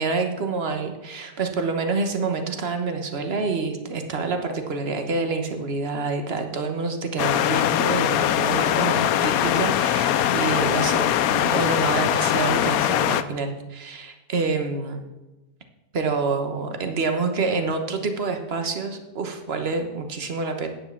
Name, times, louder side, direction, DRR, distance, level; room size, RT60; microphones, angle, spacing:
voice 1, 0.0-15.0 15.9-20.7, right 4 dB, 40° right, 6 dB, 1.2 m, -27 dB
sound 1, 7.2-13.2, left 11 dB, 70° left, 0.8 m, -22 dB
9.8 x 7.4 x 7.0 m, 1.1 s
omnidirectional pair, 2.0 m